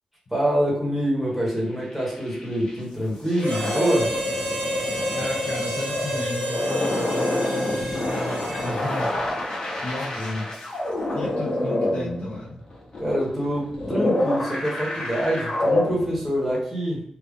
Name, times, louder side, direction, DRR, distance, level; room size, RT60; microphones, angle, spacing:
voice 1, 0.3-4.1 10.1-10.4 13.0-17.0, equal, 5° right, -5 dB, 1.4 m, -25 dB
sound 1, 1.8-2.8 3.3-16.5, left 1 dB, 35° left, 1.2 m, -27 dB
Harmonica, 3.4-9.0, equal, 90° right, 1.1 m, -31 dB
voice 2, 5.2-9.1 9.8-10.5 11.1-12.6, left 1 dB, 70° left, -5 dB, 1.4 m, -34 dB
3.4 x 2.4 x 3.6 m, 0.63 s
wide cardioid pair, 155°, 2 cm